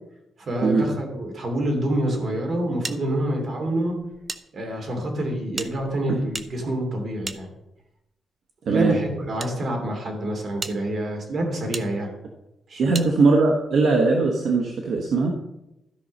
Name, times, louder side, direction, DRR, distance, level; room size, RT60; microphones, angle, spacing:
voice 1, 0.4-3.9 4.5-7.5 8.7-12.1 12.7-13.1, right 1 dB, 50° right, 2 dB, 2.7 m, -27 dB
sound 1, 2.8-4.4 4.7-4.8 5.5-8.0 8.8-9.5 10.1-10.2 10.6-10.8 11.7-11.9 12.9-13.1, right 3 dB, 30° right, 0.6 m, -36 dB
voice 2, 8.6-9.0 12.8-15.3, right 3 dB, 65° right, 1 dB, 1.2 m, -20 dB
13.0 x 5.5 x 5.3 m, 0.90 s
cardioid pair, 130°, 0 cm